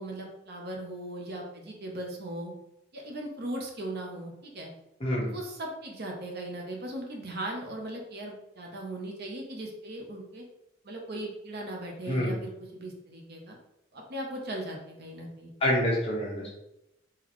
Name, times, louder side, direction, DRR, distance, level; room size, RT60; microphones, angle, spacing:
voice 1, 0.0-2.5 2.9-4.7 5.2-10.4 10.8-13.6 13.9-15.5, right 1 dB, 55° right, 0 dB, 0.8 m, -38 dB
voice 2, 15.6-16.5, equal, 30° left, -4 dB, 1.2 m, -27 dB
3.9 x 3.0 x 3.0 m, 0.85 s
head